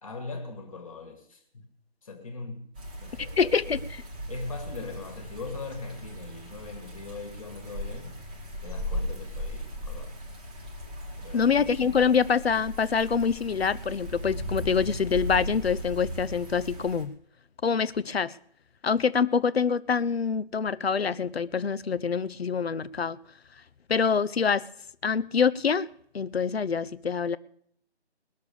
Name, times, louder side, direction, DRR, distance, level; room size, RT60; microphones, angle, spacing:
voice 1, 0.0-1.7 2.0-2.7 3.0-3.8 4.3-8.2 8.6-10.3 11.2-12.1, left 3 dB, 30° left, 1.8 m, -41 dB
sound 1, 2.7-17.0, equal, 10° right, 0.8 m, -37 dB
voice 2, 3.4-3.8 11.3-17.1 17.6-18.3 18.8-23.2 23.9-24.6 25.0-25.9 26.1-27.4, left 6 dB, 65° left, 0.7 m, -25 dB
20.0 x 6.7 x 6.8 m
figure-of-eight pair, 160°, 33 cm